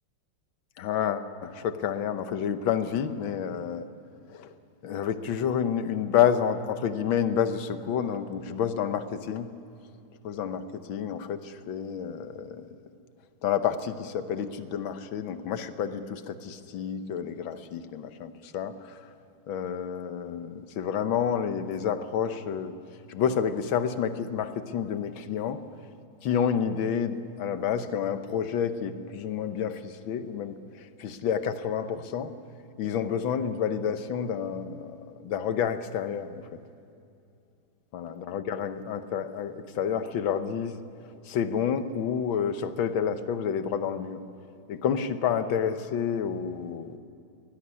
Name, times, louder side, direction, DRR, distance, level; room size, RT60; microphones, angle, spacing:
voice 1, 0.8-3.9 4.3-4.5 4.8-9.5 10.2-12.7 13.4-19.0 19.5-22.7 23.1-25.6 26.2-32.3 32.8-36.4 37.9-40.8 41.3-44.2 44.7-47.0, left 8 dB, 70° left, 10 dB, 1.8 m, -29 dB
22.5 x 19.5 x 9.8 m, 2.5 s
omnidirectional pair, 2.3 m